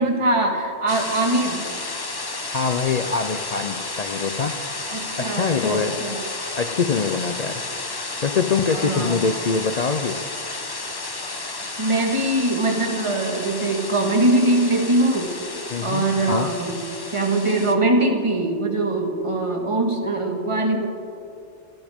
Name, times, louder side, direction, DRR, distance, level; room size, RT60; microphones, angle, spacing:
voice 1, 0.0-1.6 4.9-6.2 8.6-9.2 11.5-16.8 17.1-20.9, right 2 dB, 25° right, 2 dB, 1.6 m, -22 dB
sound 1, 0.9-17.7, left 3 dB, 20° left, 0.8 m, -32 dB
voice 2, 2.5-4.6 5.2-6.1 6.6-7.6 8.2-10.2 15.7-16.5, left 5 dB, 55° left, 7 dB, 0.5 m, -24 dB
24.0 x 13.5 x 3.6 m, 2.6 s
omnidirectional pair, 1.3 m